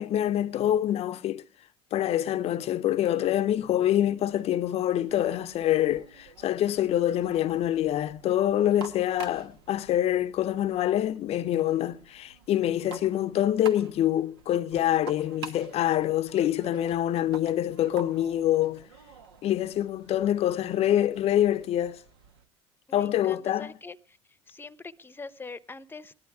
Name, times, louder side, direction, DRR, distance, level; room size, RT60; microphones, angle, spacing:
voice 1, 0.0-1.4 1.9-18.8 19.4-22.0 22.9-23.7, left 12 dB, 55° left, 0.6 m, -26 dB
sound 1, 3.2-22.4, right 5 dB, 85° right, 1.2 m, -49 dB
voice 2, 22.9-24.2 24.5-26.1, left 4 dB, 15° left, 0.8 m, -43 dB
18.0 x 11.5 x 4.7 m
hypercardioid pair, 70°, 13 cm